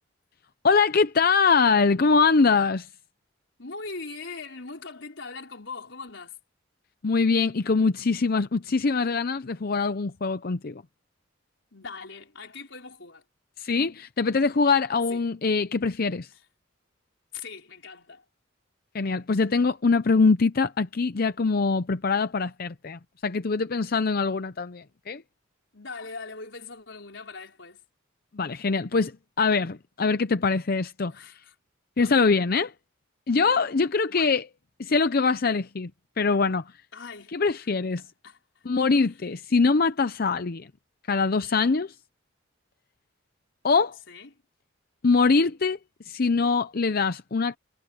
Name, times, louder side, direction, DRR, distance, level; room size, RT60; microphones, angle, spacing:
voice 1, 0.6-2.9 7.0-10.8 13.6-16.3 18.9-25.2 28.3-29.1 29.4-31.4 32.0-32.7 33.3-34.4 34.8-35.9 36.2-36.6 37.3-38.0 38.6-40.7 41.1-41.9 43.6-44.0 45.0-45.8 46.0-47.6, left 4 dB, 50° left, 0.6 m, -23 dB
voice 2, 3.6-6.4 11.7-13.2 15.1-15.2 16.3-16.4 17.3-18.2 25.7-27.8 31.1-31.5 32.0-32.2 34.1-34.4 36.9-37.4 37.9-38.6 44.1-44.4, left 4 dB, 65° left, 5.0 m, -41 dB
head